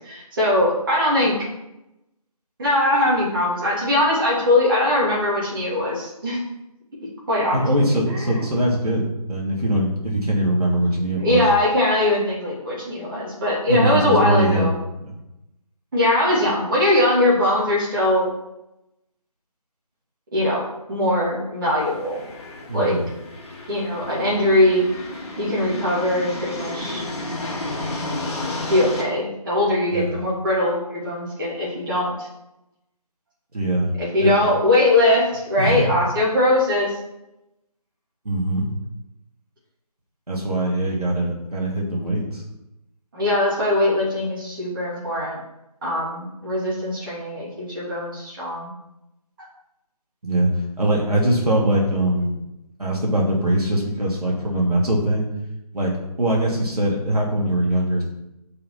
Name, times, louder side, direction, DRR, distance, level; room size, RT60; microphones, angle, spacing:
voice 1, 0.0-1.4 2.6-6.4 7.3-7.6 8.3-8.5 11.2-14.7 15.9-18.3 20.3-20.6 20.9-22.2 22.7-23.0 23.7-24.8 25.4-27.1 28.7-32.3 34.0-37.0 43.1-45.4 45.8-48.7, left 1 dB, 30° right, -6 dB, 2.8 m, -21 dB
voice 2, 7.5-11.4 13.7-14.7 15.0-15.1 22.7-23.0 29.9-30.1 33.5-33.9 34.2-34.5 35.6-35.8 38.2-38.7 40.3-42.4 50.2-52.3 52.8-55.3 55.7-55.9 56.2-58.0, right 1 dB, 70° right, -3 dB, 2.6 m, -22 dB
sound 1, 21.8-29.0, left 2 dB, 45° left, 2.4 m, -32 dB
5.6 x 5.6 x 5.7 m, 0.90 s
figure-of-eight pair, 160°, 20 cm